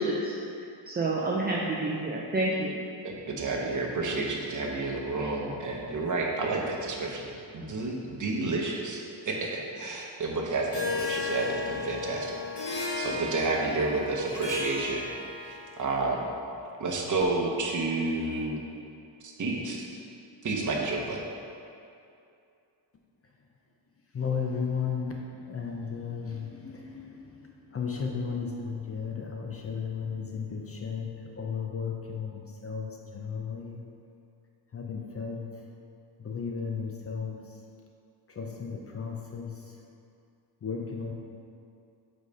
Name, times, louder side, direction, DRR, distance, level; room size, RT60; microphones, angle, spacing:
voice 1, 0.0-2.7, right 2 dB, 20° right, -4 dB, 0.5 m, -29 dB
voice 2, 3.0-7.3 7.5-15.0 15.4-16.3 16.8-18.6 19.2-19.8 20.4-21.2, right 3 dB, 45° right, -1 dB, 0.9 m, -30 dB
Harp, 10.7-15.7, left 3 dB, 65° left, 1.3 m, -34 dB
voice 3, 24.1-33.8 34.7-35.5 36.2-37.4 38.3-39.7 40.6-41.1, left 6 dB, 35° left, 0 dB, 0.5 m, -34 dB
5.2 x 4.0 x 5.2 m, 2.5 s
wide cardioid pair, 130°, 44 cm